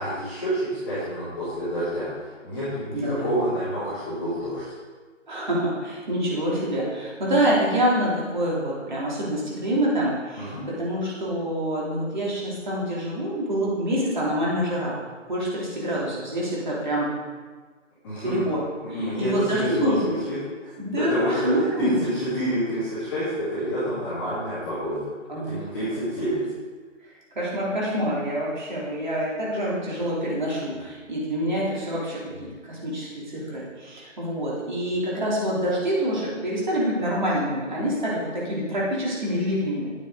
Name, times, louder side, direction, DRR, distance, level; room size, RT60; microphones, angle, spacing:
voice 1, 0.0-4.6 10.3-10.7 18.0-18.5 18.9-20.4 20.6-25.0 25.3-26.4, equal, 5° left, -17 dB, 2.4 m, -28 dB
voice 2, 2.9-3.3 5.3-15.0 15.3-17.1 18.2-18.6 18.9-20.1 20.8-22.0 25.3-25.6 27.3-32.3 32.6-39.9, equal, 35° right, -6 dB, 3.3 m, -26 dB
10.5 x 9.0 x 3.9 m, 1.4 s
figure-of-eight pair, 170°, 38 cm